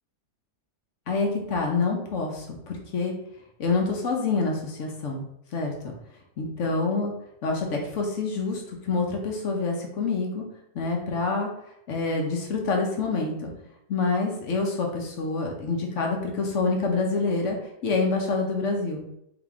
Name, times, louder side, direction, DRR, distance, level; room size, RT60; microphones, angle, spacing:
voice 1, 1.1-3.1 3.6-5.2 5.5-5.7 6.4-7.1 7.4-10.4 10.7-11.5 11.9-13.5 13.9-17.6 17.8-19.0, left 3 dB, 60° left, 1 dB, 0.9 m, -27 dB
3.5 x 2.9 x 3.5 m, 0.79 s
omnidirectional pair, 1.7 m